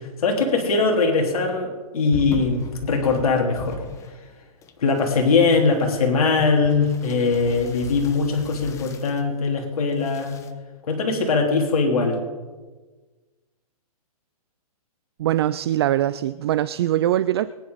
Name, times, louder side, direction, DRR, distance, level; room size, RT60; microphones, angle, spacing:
voice 1, 0.0-3.8 4.8-10.4 10.9-12.2, left 4 dB, 65° left, 1 dB, 3.4 m, -21 dB
sound 1, 2.1-4.3 4.6-9.3 9.8-10.5, left 6 dB, 15° left, 0.8 m, -40 dB
voice 2, 15.2-17.5, right 12 dB, 40° right, 15 dB, 0.4 m, -22 dB
23.0 x 10.5 x 4.1 m, 1.3 s
hypercardioid pair, 150°, 20 cm